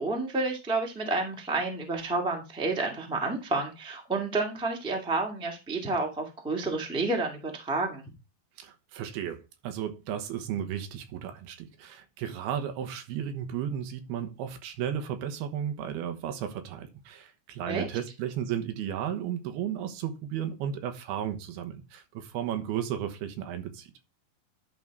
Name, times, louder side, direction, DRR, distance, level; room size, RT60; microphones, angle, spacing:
voice 1, 0.0-8.0 17.6-17.9, right 3 dB, 5° right, 0.9 m, -30 dB
voice 2, 8.6-23.9, right 9 dB, 85° right, 3.0 m, -34 dB
11.0 x 3.8 x 4.7 m
omnidirectional pair, 4.4 m